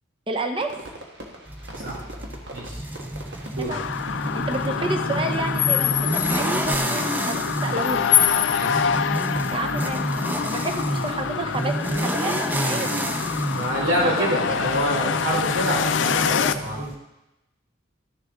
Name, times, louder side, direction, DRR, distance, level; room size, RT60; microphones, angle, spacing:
voice 1, 0.3-0.7 3.6-3.9 4.3-8.0 9.5-13.0 14.0-14.7, right 2 dB, 25° right, 5 dB, 0.8 m, -30 dB
Fireworks, 0.6-10.1, right 1 dB, 60° right, 1.4 m, -42 dB
sound 1, 1.5-17.0, right 1 dB, 10° right, 0.4 m, -30 dB
sound 2, 3.7-16.5, left 8 dB, 70° left, 0.4 m, -25 dB
voice 2, 8.5-8.9 13.5-16.9, equal, 90° right, -3 dB, 3.1 m, -26 dB
12.0 x 6.6 x 3.6 m, 0.92 s
head